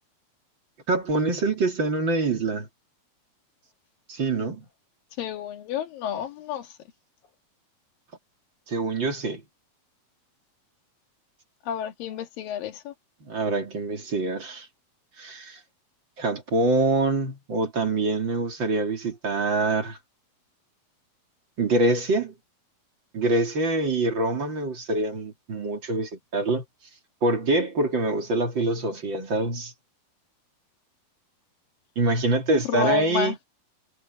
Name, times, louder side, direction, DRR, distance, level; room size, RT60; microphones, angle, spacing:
voice 1, 0.9-2.7 4.1-4.7 8.7-9.4 13.2-14.7 15.2-15.6 16.2-20.0 21.6-22.3 23.1-26.6 27.2-29.7 32.0-33.4, right 2 dB, 35° right, 3.1 m, -25 dB
voice 2, 5.2-6.7 11.7-12.9 32.7-33.3, left 9 dB, 65° left, 3.3 m, -30 dB
omnidirectional pair, 4.4 m